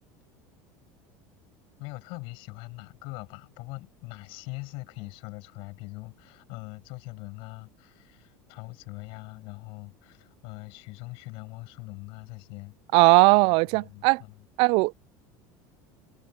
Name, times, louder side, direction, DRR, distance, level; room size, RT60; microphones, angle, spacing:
voice 1, 1.8-12.8 13.7-14.4, left 25 dB, 65° left, 7.9 m, -42 dB
voice 2, 12.9-14.2 14.6-14.9, right 26 dB, 65° right, 0.4 m, -19 dB
supercardioid pair, 110°, 10 cm